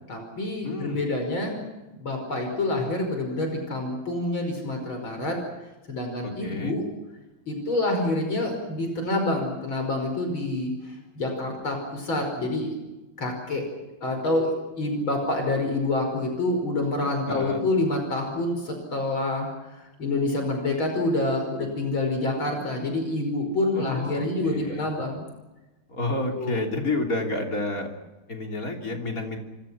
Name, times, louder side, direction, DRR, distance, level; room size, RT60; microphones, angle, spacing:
voice 1, 0.1-1.6 1.9-5.4 5.9-6.8 7.5-12.7 13.2-13.6 14.0-25.3 26.3-26.6, left 2 dB, 75° left, 3 dB, 6.0 m, -27 dB
voice 2, 0.6-1.0 6.2-6.8 17.3-17.7 23.7-24.9 25.9-27.9 28.3-29.4, left 2 dB, 40° left, 2 dB, 3.7 m, -30 dB
27.5 x 26.0 x 5.8 m, 1.1 s
omnidirectional pair, 2.2 m